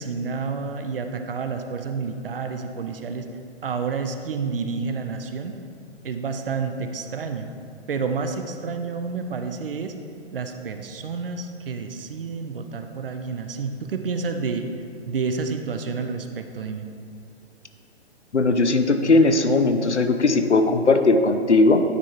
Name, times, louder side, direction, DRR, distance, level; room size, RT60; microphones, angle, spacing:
voice 1, 0.0-3.3 3.6-5.5 6.0-7.5 7.9-10.0 10.3-14.7 15.1-16.9, right 5 dB, 55° right, 7 dB, 0.6 m, -29 dB
voice 2, 18.3-21.8, left 3 dB, 85° left, 7 dB, 0.6 m, -18 dB
9.5 x 3.5 x 4.4 m, 2.4 s
figure-of-eight pair, 125°, 33 cm